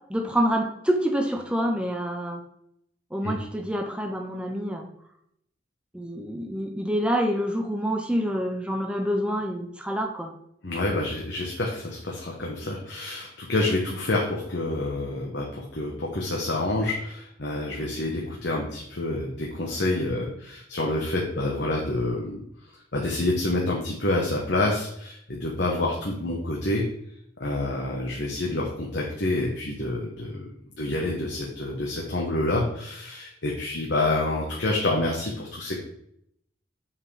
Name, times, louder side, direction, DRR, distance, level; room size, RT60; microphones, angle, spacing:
voice 1, 0.1-2.4 3.1-4.9 5.9-10.3, equal, 5° right, 3 dB, 0.6 m, -27 dB
voice 2, 10.6-22.4 22.9-26.8 27.4-30.4 30.8-35.8, left 2 dB, 65° left, -2 dB, 1.1 m, -28 dB
7.5 x 5.7 x 3.3 m, 0.74 s
head